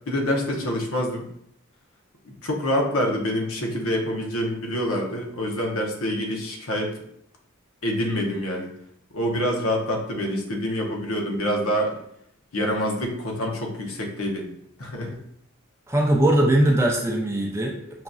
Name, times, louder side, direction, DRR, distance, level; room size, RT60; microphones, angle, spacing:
voice 1, 0.1-1.3 2.2-7.0 7.8-8.7 9.1-12.0 12.5-14.5 14.8-15.2, equal, 75° left, 1 dB, 0.8 m, -26 dB
voice 2, 15.9-18.0, right 1 dB, 10° right, -1 dB, 0.4 m, -21 dB
5.6 x 2.5 x 2.3 m, 0.72 s
head